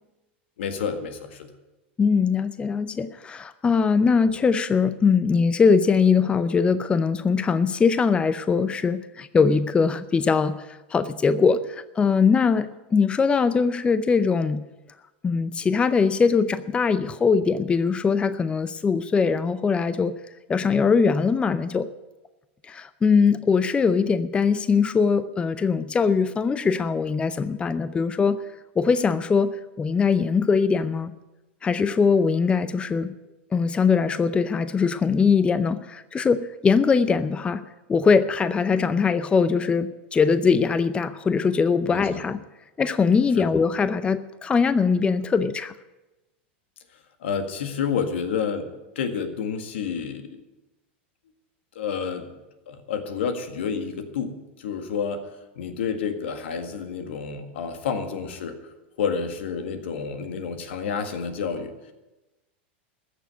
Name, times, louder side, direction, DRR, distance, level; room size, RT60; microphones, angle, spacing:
voice 1, 0.6-1.5 41.9-42.0 43.4-43.5 47.2-48.7 49.0-50.4 51.8-52.3 52.7-55.2 55.6-58.6 59.0-61.7, left 6 dB, 80° left, 7 dB, 1.8 m, -29 dB
voice 2, 2.0-14.6 15.2-20.2 20.5-21.9 22.6-28.5 28.8-31.1 31.6-33.1 33.5-37.6 37.9-42.4 42.8-45.7, left 5 dB, 15° left, 13 dB, 0.5 m, -21 dB
14.5 x 7.0 x 9.3 m, 1.0 s
hypercardioid pair, 115°, 6 cm